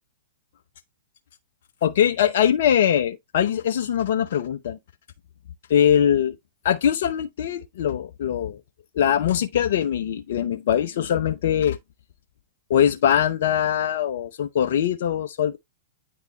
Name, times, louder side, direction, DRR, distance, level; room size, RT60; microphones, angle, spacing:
voice 1, 1.8-4.8 5.7-6.4 6.6-8.6 9.0-11.8 12.7-15.6, left 9 dB, 60° left, 0.7 m, -22 dB
9.3 x 3.5 x 3.1 m
hypercardioid pair, 110°, 0 cm